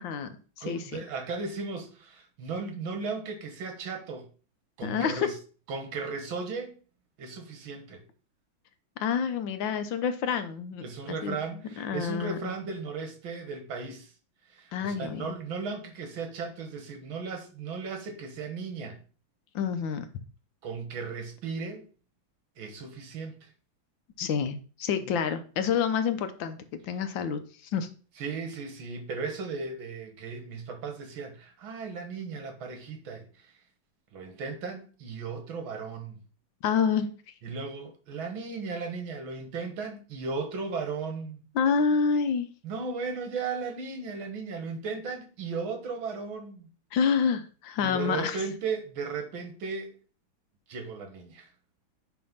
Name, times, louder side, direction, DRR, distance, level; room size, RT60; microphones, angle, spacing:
voice 1, 0.0-1.0 4.8-5.3 9.0-10.8 11.2-11.4 11.8-12.5 14.7-15.3 19.5-20.1 24.2-27.4 27.7-27.9 36.6-37.1 41.5-42.5 46.9-48.4, left 6 dB, 75° left, 1.5 m, -28 dB
voice 2, 0.6-4.3 4.8-5.3 5.7-6.7 7.2-8.0 10.8-14.1 14.5-19.0 20.6-21.9 22.6-23.5 28.2-33.4 34.1-36.2 37.4-41.4 42.6-46.7 47.8-49.9 50.7-51.5, right 4 dB, 80° right, 2.2 m, -36 dB
9.5 x 3.4 x 5.5 m
omnidirectional pair, 2.2 m